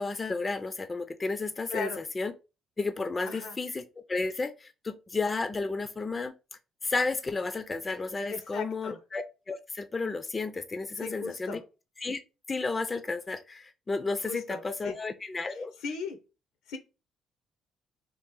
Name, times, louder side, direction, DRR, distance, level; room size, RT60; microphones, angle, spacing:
voice 1, 0.0-2.3 2.8-6.3 6.8-11.6 12.0-12.2 12.5-15.7, left 3 dB, 30° left, 0.4 m, -32 dB
voice 2, 1.7-2.0 3.2-3.6 8.3-9.0 11.0-11.6 14.2-14.9 15.5-16.2 16.7-16.8, left 4 dB, 75° left, 0.6 m, -38 dB
2.9 x 2.4 x 3.7 m
hypercardioid pair, 55°, 0 cm